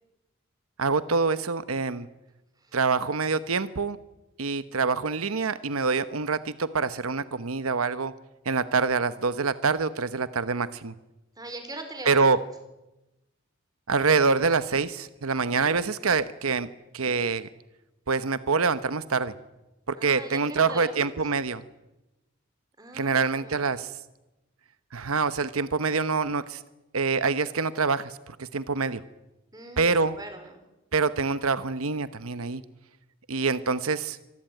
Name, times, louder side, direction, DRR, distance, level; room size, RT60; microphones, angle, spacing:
voice 1, 0.8-2.1 2.7-4.0 4.4-8.1 8.4-10.9 12.0-12.4 13.9-16.7 16.9-17.5 18.1-19.3 19.9-21.6 22.9-24.0 24.9-26.6 26.9-29.0 29.8-30.2 30.9-32.6 33.3-34.2, right 4 dB, 85° right, 13 dB, 1.0 m, -25 dB
voice 2, 11.4-12.2 20.0-21.1 22.8-23.6 29.5-30.5, right 2 dB, 20° right, 6 dB, 4.7 m, -40 dB
25.5 x 19.5 x 9.2 m, 0.99 s
head